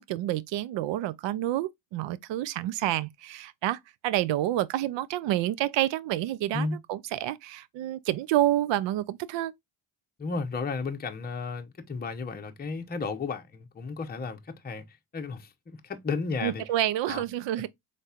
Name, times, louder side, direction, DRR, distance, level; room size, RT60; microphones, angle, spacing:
voice 1, 0.0-9.5 16.4-17.7, right 14 dB, 60° right, 0.6 m, -28 dB
voice 2, 10.2-14.8 15.1-16.6 17.1-17.2, left 4 dB, 20° left, 0.8 m, -33 dB
4.1 x 3.3 x 2.4 m
supercardioid pair, 70°, 49 cm